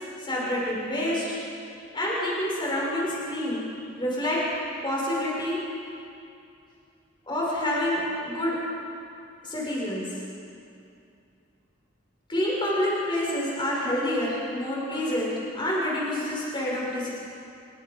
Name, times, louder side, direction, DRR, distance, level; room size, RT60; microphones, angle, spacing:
voice 1, 0.2-1.3 1.9-3.6 4.0-4.4 4.8-5.6 7.2-8.6 9.4-10.2 12.3-17.1, left 1 dB, 25° left, -5 dB, 6.3 m, -27 dB
26.5 x 23.0 x 5.4 m, 2.6 s
head